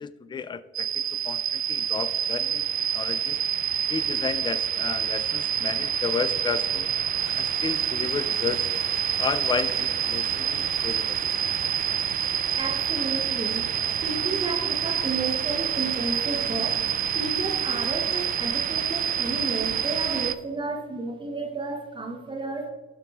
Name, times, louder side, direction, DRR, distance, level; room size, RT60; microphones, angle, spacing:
voice 1, 0.0-2.6 2.9-3.4 3.9-6.9 7.3-8.7 9.2-11.2, left 6 dB, 25° left, 14 dB, 0.4 m, -32 dB
sound 1, 0.7-20.3, right 9 dB, 45° right, 0.4 m, -27 dB
sound 2, 7.2-20.2, left 7 dB, 85° left, 1.0 m, -47 dB
voice 2, 12.6-13.7 14.0-16.9 17.1-22.7, right 3 dB, 25° right, 4 dB, 0.8 m, -32 dB
12.5 x 5.9 x 2.4 m, 1.4 s
cardioid pair, 90°, 20 cm